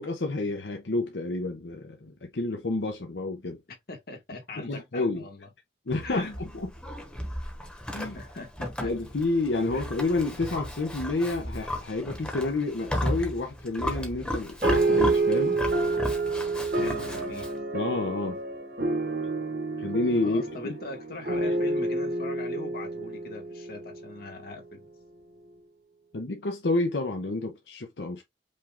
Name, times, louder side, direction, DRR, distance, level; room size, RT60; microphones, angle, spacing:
voice 1, 0.0-3.6 4.6-5.2 5.9-6.7 7.9-8.2 8.8-15.6 17.7-18.4 19.8-20.7 21.4-21.5 26.1-28.2, left 2 dB, 80° left, 0.8 m, -29 dB
voice 2, 3.9-5.5 6.0-6.4 8.1-8.9 9.7-9.8 16.7-17.5 20.2-24.9, left 2 dB, 55° left, 1.6 m, -41 dB
Livestock farm animals working animals, 5.9-17.6, equal, 5° left, 1.0 m, -34 dB
sound 1, 14.6-24.4, right 2 dB, 60° right, 1.3 m, -28 dB
5.4 x 2.5 x 3.5 m
head